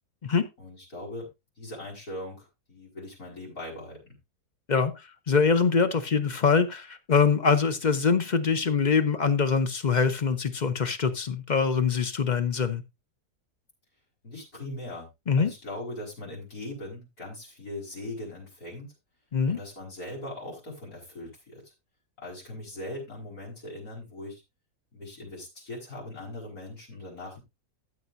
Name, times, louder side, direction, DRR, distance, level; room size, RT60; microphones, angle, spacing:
voice 1, 0.6-1.3 1.6-4.2 14.2-15.1 15.4-18.9 19.5-21.7 22.2-24.4 24.9-27.4, left 1 dB, 60° left, 5.1 m, -40 dB
voice 2, 4.7-12.8 15.3-15.5 19.3-19.6, left 5 dB, 40° left, 0.6 m, -24 dB
13.5 x 7.9 x 2.6 m
omnidirectional pair, 1.8 m